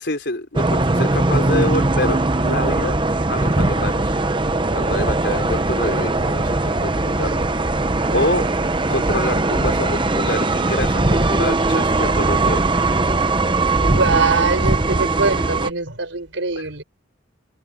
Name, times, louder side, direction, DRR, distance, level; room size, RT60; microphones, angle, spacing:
voice 1, 0.0-3.0 3.3-4.1 4.7-7.4 8.1-8.5 8.9-12.7 16.6-16.7, left 1 dB, 60° left, 4.8 m, -26 dB
sound 1, 0.5-15.7, right 2 dB, 25° right, 0.9 m, -20 dB
voice 2, 13.8-16.8, right 3 dB, 80° right, 4.6 m, -23 dB
head